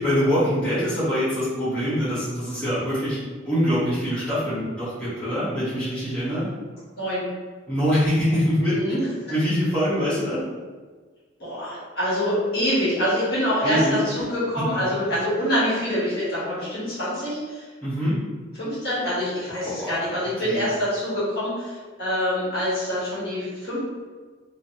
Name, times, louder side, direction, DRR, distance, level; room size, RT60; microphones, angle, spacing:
voice 1, 0.0-3.2 3.4-6.5 7.7-8.8 9.3-10.4 13.6-14.0 17.8-18.2 19.6-20.0 20.4-20.6, equal, 5° left, -13 dB, 1.2 m, -24 dB
voice 2, 8.7-9.1 11.4-17.7 18.6-23.8, equal, 55° left, -9 dB, 1.4 m, -25 dB
3.1 x 2.8 x 2.6 m, 1.4 s
head